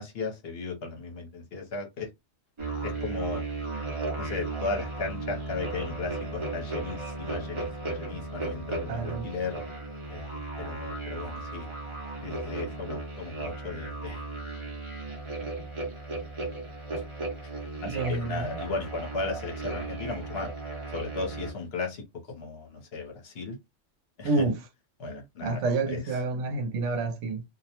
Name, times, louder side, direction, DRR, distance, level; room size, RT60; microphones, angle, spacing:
voice 1, 0.0-2.1 2.8-3.4 4.2-9.6 10.1-11.7 12.2-14.2 17.6-20.5 20.9-23.6 24.2-24.5 25.0-26.2, left 4 dB, 60° left, 1.0 m, -36 dB
sound 1, 2.6-21.5, right 3 dB, 30° right, 0.7 m, -35 dB
voice 2, 8.9-9.3 17.8-18.5 24.2-24.6 25.4-27.4, right 3 dB, 80° right, 0.9 m, -28 dB
2.4 x 2.1 x 2.8 m
omnidirectional pair, 1.2 m